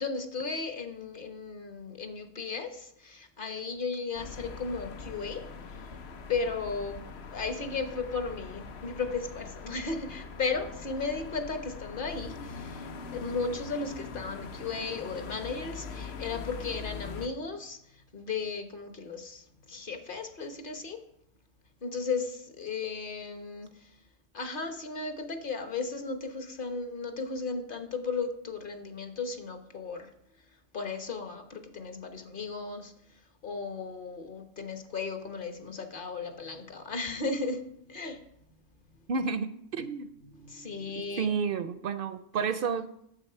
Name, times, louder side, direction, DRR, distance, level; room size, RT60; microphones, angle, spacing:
voice 1, 0.0-5.4 5.7-5.8 6.3-7.0 7.3-21.0 21.8-23.9 24.3-30.1 30.7-32.9 33.4-37.6 37.9-38.2 40.4-41.3, left 4 dB, 50° left, 7 dB, 1.2 m, -35 dB
sound 1, 4.1-17.3, left 4 dB, 75° left, 1.0 m, -42 dB
voice 2, 39.1-40.1 41.2-42.9, right 5 dB, 60° right, 12 dB, 0.7 m, -31 dB
8.9 x 7.3 x 5.5 m, 0.73 s
omnidirectional pair, 1.1 m